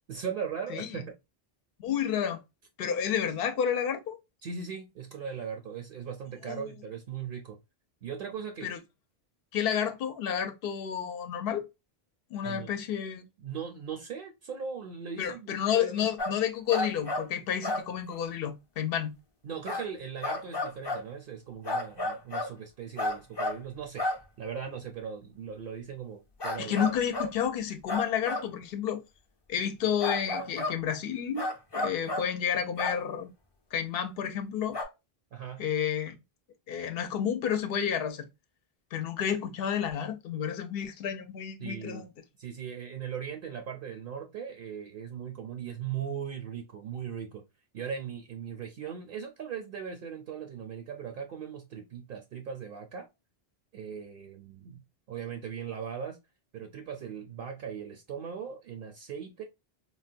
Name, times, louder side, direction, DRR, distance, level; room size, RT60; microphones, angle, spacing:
voice 1, 0.1-1.1 4.4-7.6 8.0-8.7 12.4-12.7 13.4-16.1 19.4-26.7 35.3-35.6 41.6-42.1 42.4-47.4 47.7-53.1 53.7-56.2 56.5-59.4, right 7 dB, 65° right, 0.7 m, -39 dB
voice 2, 0.7-1.0 1.8-2.4 2.8-4.2 6.5-6.6 8.6-8.8 9.5-11.7 12.3-13.2 15.2-19.1 26.6-29.0 29.5-33.3 33.7-34.8 35.6-36.1 36.7-38.3 38.9-42.1, left 8 dB, 70° left, 0.8 m, -30 dB
sound 1, 16.2-16.4 16.7-17.3 17.6-17.9 18.1-18.2 19.7-19.8 20.2-21.0 21.7-22.5 23.0-23.6 24.0-24.2 26.4-27.3 27.9-28.5 30.0-30.7 31.4-32.3 32.8-33.0 34.7-34.8, left 2 dB, 30° left, 0.6 m, -31 dB
3.8 x 2.1 x 2.4 m
omnidirectional pair, 1.0 m